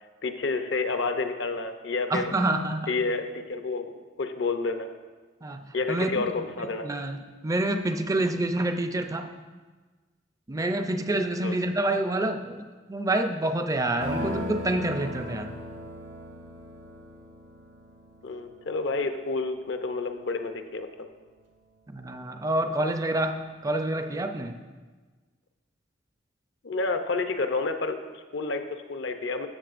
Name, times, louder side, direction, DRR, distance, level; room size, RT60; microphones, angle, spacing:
voice 1, 0.2-2.3 2.9-4.9 5.7-6.9 11.4-11.6 18.2-20.9 26.6-29.5, left 3 dB, 65° left, 7 dB, 0.6 m, -29 dB
voice 2, 2.1-2.9 5.4-5.6 5.9-6.1 6.4-6.5 6.8-7.2 7.4-9.3 10.5-12.6 12.9-15.5 21.9-24.6, right 1 dB, 15° right, 7 dB, 0.4 m, -27 dB
sound 1, 14.0-17.8, left 1 dB, 85° right, 2.3 m, -37 dB
sound 2, 14.2-20.9 21.2-21.3 21.5-21.6 22.4-22.5 22.7-23.9, right 2 dB, 60° right, 0.8 m, -45 dB
13.5 x 7.2 x 2.5 m, 1.3 s
head